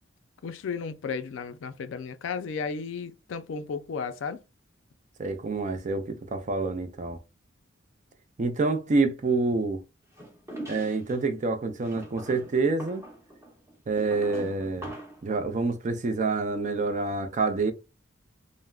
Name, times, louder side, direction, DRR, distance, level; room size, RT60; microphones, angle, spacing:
voice 1, 0.4-4.4, left 5 dB, 70° left, 0.4 m, -34 dB
voice 2, 5.2-7.2 8.4-9.8 10.7-13.0 13.9-14.9 15.2-17.7, right 3 dB, 40° right, 0.4 m, -27 dB
sound 1, 10.2-11.2 11.8-15.3, right 1 dB, 15° right, 0.9 m, -42 dB
3.4 x 2.0 x 2.3 m
head